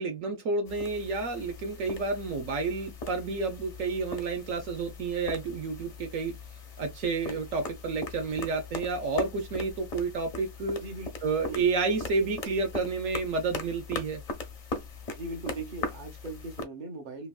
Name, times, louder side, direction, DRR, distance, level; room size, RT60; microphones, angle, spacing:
voice 1, 0.0-6.4 6.8-10.8 11.2-14.2, right 4 dB, 70° right, 1.2 m, -30 dB
sound 1, 0.7-16.6, left 3 dB, 45° left, 0.5 m, -40 dB
voice 2, 11.4-11.7 15.1-17.3, right 2 dB, 40° right, 0.9 m, -39 dB
3.1 x 2.6 x 2.3 m
omnidirectional pair, 1.4 m